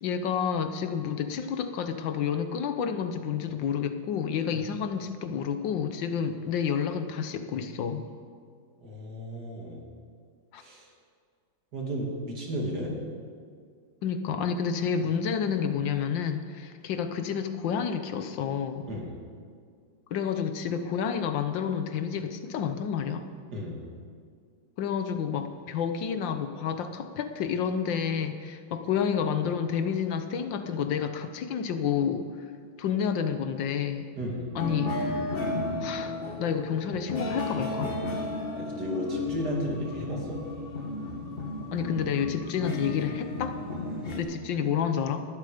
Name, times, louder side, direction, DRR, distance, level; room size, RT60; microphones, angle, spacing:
voice 1, 0.0-8.0 10.5-10.6 14.0-18.9 20.1-23.2 24.8-32.3 32.8-34.1 34.5-34.9 35.8-38.0 41.7-43.6 44.2-45.3, left 7 dB, 75° left, 9 dB, 1.5 m, -29 dB
voice 2, 8.8-9.8 10.6-10.9 11.7-12.9 18.9-19.1 23.5-23.8 34.2-34.5 38.5-40.4 43.8-44.0, equal, 55° right, -1 dB, 3.0 m, -34 dB
sound 1, 34.6-44.2, left 2 dB, 30° left, 1.5 m, -33 dB
19.0 x 12.0 x 5.1 m, 2.1 s
omnidirectional pair, 2.1 m